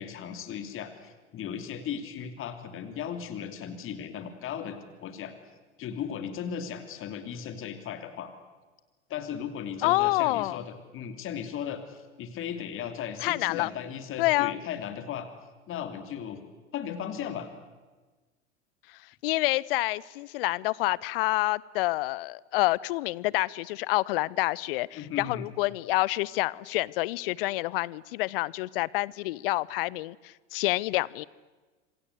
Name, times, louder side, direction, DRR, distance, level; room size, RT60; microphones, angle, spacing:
voice 1, 0.0-5.3 5.8-8.3 9.1-15.3 15.7-16.4 16.7-17.5 24.9-25.4, left 8 dB, 35° left, 8 dB, 3.1 m, -36 dB
voice 2, 9.8-10.6 13.2-13.7 14.2-14.6 19.2-31.3, left 20 dB, 55° left, 24 dB, 0.8 m, -28 dB
27.0 x 25.5 x 8.2 m, 1.3 s
figure-of-eight pair, 80°, 34 cm